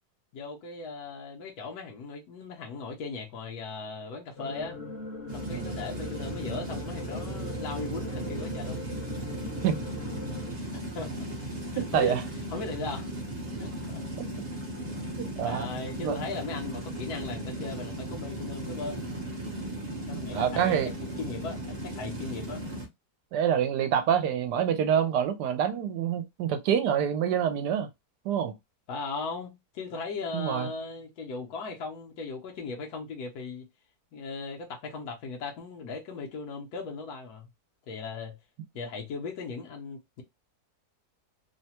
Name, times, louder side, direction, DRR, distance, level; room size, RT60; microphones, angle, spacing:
voice 1, 0.3-4.8 5.3-8.8 10.7-11.3 11.7-12.2 12.5-13.1 13.6-14.0 15.4-19.1 20.1-22.7 28.9-33.7 34.1-37.5 37.9-38.4 38.7-40.2, left 4 dB, 70° left, 1.2 m, -38 dB
sound 1, 4.4-10.5, left 3 dB, 45° left, 1.0 m, -40 dB
sound 2, 5.3-22.9, right 1 dB, 40° right, 0.7 m, -36 dB
voice 2, 5.4-5.8 9.6-9.8 11.8-12.2 14.2-14.3 15.2-15.7 16.0-16.2 20.3-20.9 23.3-27.9 28.2-28.5 30.3-30.7, right 9 dB, 75° right, 1.2 m, -26 dB
3.2 x 2.2 x 2.8 m
omnidirectional pair, 1.8 m